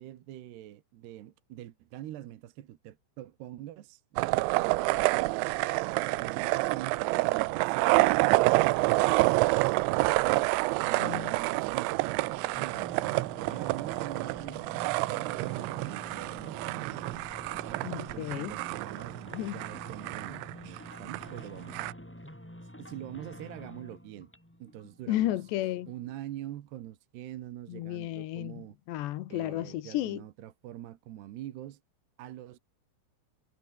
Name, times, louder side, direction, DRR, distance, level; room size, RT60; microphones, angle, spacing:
voice 1, 0.0-4.2 4.5-12.2 12.6-13.0 13.4-17.0 17.4-22.4 22.8-24.3 24.6-25.4 25.9-28.8 29.3-31.8 32.2-32.6, right 13 dB, 65° right, 3.0 m, -45 dB
sound 1, 4.2-21.9, right 22 dB, 85° right, 2.6 m, -28 dB
voice 2, 11.0-11.3 17.8-18.6 19.3-19.6 25.1-25.9 27.7-30.2, left 15 dB, 70° left, 3.0 m, -33 dB
sound 2, 12.0-26.1, equal, ahead, 4.4 m, -48 dB
omnidirectional pair, 5.9 m